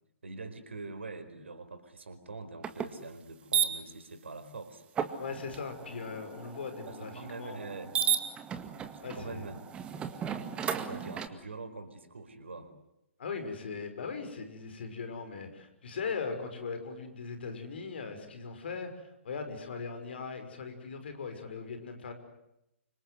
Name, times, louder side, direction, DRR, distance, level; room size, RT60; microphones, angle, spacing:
voice 1, 0.2-4.8 6.8-7.9 8.9-9.7 10.7-12.7, right 3 dB, 65° right, 8 dB, 4.7 m, -44 dB
sound 1, 2.6-2.9 3.5-3.7 5.0-11.3, right 9 dB, 15° right, 1.9 m, -34 dB
voice 2, 5.2-7.6 9.0-9.5 13.2-22.1, left 5 dB, 55° left, 7 dB, 5.7 m, -39 dB
29.0 x 25.5 x 8.0 m, 0.85 s
figure-of-eight pair, 125°, 7 cm